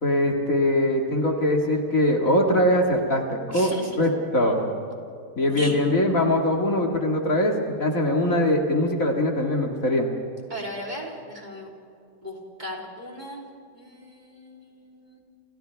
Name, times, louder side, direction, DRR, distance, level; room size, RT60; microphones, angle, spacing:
voice 1, 0.0-4.7 5.4-10.1, left 1 dB, 50° left, 1 dB, 2.4 m, -22 dB
voice 2, 3.5-4.0 5.5-5.8 10.5-11.7 12.2-13.4 13.7-15.2, equal, 25° right, -2 dB, 3.5 m, -37 dB
29.5 x 29.0 x 3.5 m, 2.5 s
omnidirectional pair, 1.9 m